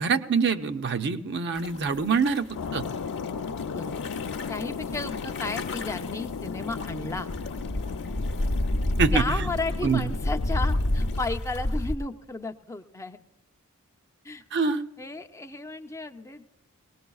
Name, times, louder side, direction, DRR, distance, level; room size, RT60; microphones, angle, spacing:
voice 1, 0.0-2.5 2.7-2.9 9.0-9.2 9.8-10.0 14.5-14.8, right 5 dB, 50° right, 9 dB, 0.6 m, -24 dB
sound 1, 1.5-12.0, left 1 dB, 55° left, 0.9 m, -31 dB
sound 2, 2.5-11.2, left 5 dB, 85° left, 0.5 m, -36 dB
voice 2, 4.5-7.3 9.1-13.2 14.2-14.4 15.0-16.5, left 3 dB, 15° left, 6 dB, 0.5 m, -34 dB
19.5 x 19.0 x 2.3 m, 1.1 s
head